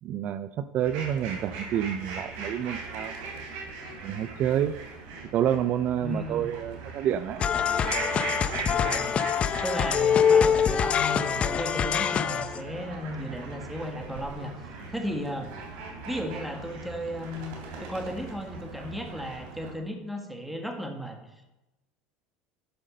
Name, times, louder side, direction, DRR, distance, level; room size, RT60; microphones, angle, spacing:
voice 1, 0.0-3.3 4.0-4.8 5.3-7.4, right 10 dB, 50° right, 12 dB, 0.4 m, -28 dB
sound 1, 0.8-19.7, right 3 dB, 75° right, 3.2 m, -39 dB
voice 2, 6.0-6.5 8.6-9.2 9.6-15.5 16.1-17.5 17.8-21.6, equal, ahead, 3 dB, 1.8 m, -35 dB
sound 2, 7.4-12.6, left 7 dB, 35° left, 0.6 m, -24 dB
11.5 x 5.1 x 6.4 m, 0.96 s
supercardioid pair, 115°, 4 cm